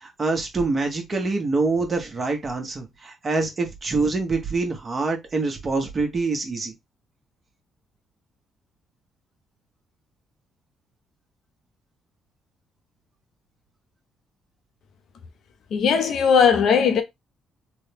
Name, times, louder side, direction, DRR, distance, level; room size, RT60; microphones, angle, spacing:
voice 1, 0.0-6.7, right 3 dB, 35° right, 1.1 m, -25 dB
voice 2, 15.7-17.0, left 6 dB, 70° left, 0.6 m, -18 dB
3.7 x 2.2 x 3.3 m
cardioid pair, 90°, 0 cm